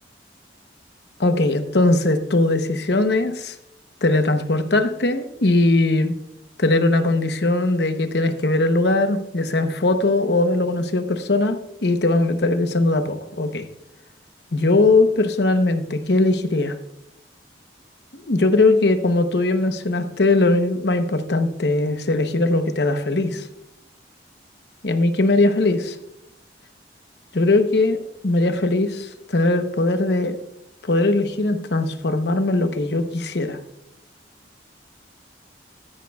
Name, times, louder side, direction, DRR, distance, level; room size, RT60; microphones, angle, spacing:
voice 1, 1.2-3.6 4.0-6.1 6.6-13.7 14.5-16.7 18.1-23.5 24.8-26.0 27.3-30.4 30.8-33.6, left 2 dB, 65° left, 8 dB, 0.9 m, -20 dB
13.5 x 10.5 x 2.3 m, 0.78 s
head